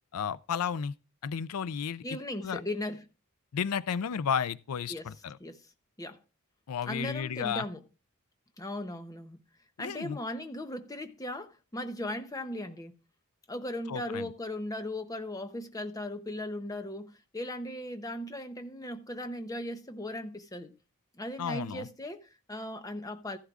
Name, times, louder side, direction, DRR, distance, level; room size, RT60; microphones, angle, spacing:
voice 1, 0.1-0.9 1.2-2.0 2.4-2.6 3.5-5.4 6.7-7.7 9.8-10.2 13.9-14.3 21.4-21.9, left 7 dB, 90° left, 0.5 m, -33 dB
voice 2, 2.0-3.0 4.9-5.1 5.4-5.6 6.0-6.2 6.8-7.8 8.6-9.4 9.8-12.9 13.5-20.7 21.2-23.4, left 1 dB, 15° left, 0.7 m, -37 dB
14.0 x 11.5 x 2.4 m
head